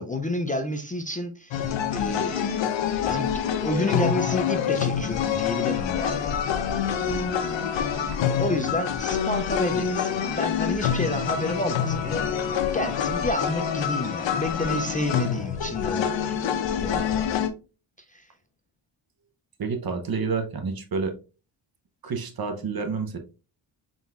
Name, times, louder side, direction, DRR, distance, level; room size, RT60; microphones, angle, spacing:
voice 1, 0.0-2.7 3.1-6.4 8.2-12.3 12.7-17.3 18.1-18.3, left 1 dB, 20° left, 5 dB, 0.4 m, -30 dB
sound 1, 1.5-17.5, left 8 dB, 65° left, 0.7 m, -26 dB
voice 2, 19.6-21.1 22.0-23.2, right 4 dB, 50° right, 6 dB, 0.8 m, -29 dB
4.0 x 3.8 x 2.4 m, 0.33 s
cardioid pair, 95°, 48 cm